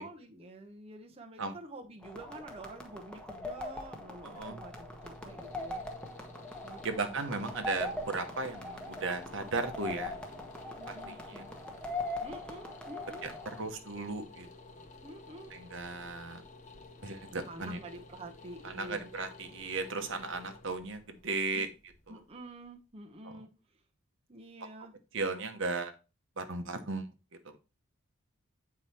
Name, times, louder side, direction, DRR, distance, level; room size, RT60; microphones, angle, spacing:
voice 1, 0.0-5.8 6.6-7.2 10.8-11.5 12.2-13.3 15.0-15.5 17.4-19.2 21.5-21.7 22.1-23.8 24.3-24.9, right 2 dB, 25° right, 3 dB, 0.9 m, -48 dB
sound 1, 2.0-13.6, left 2 dB, 5° left, 1.2 m, -41 dB
sound 2, 4.2-22.9, left 3 dB, 35° left, 1.1 m, -52 dB
voice 2, 6.8-10.1 10.9-11.0 11.3-11.4 13.2-13.3 13.6-14.5 15.5-16.4 17.0-17.8 18.6-21.7 25.1-25.9 26.4-27.1, right 3 dB, 60° right, 8 dB, 1.1 m, -36 dB
8.4 x 4.8 x 4.4 m, 0.30 s
head